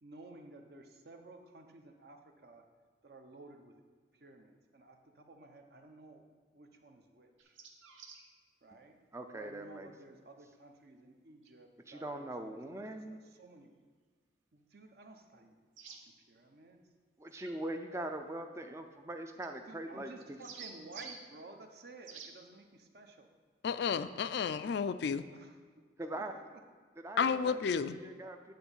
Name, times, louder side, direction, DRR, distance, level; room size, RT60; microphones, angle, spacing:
voice 1, 0.0-2.6 3.0-3.8 4.2-6.3 6.5-7.5 8.6-9.0 9.3-13.7 14.5-15.5 15.9-16.0 16.3-16.8 19.7-23.3 26.2-26.3, right 2 dB, 55° right, 4 dB, 0.8 m, -54 dB
sound 1, 7.4-8.2 11.4-11.5 15.8-16.0 17.3-17.5 19.4-19.5 20.2-21.2 22.0-22.3, right 5 dB, 90° right, 1.0 m, -49 dB
voice 2, 9.1-9.9 11.9-13.2 17.2-20.4 26.0-26.6 27.0-28.5, right 1 dB, 15° right, 6 dB, 0.4 m, -42 dB
voice 3, 23.6-25.2 27.2-28.0, left 6 dB, 60° left, 12 dB, 0.3 m, -32 dB
9.4 x 3.9 x 7.1 m, 1.5 s
head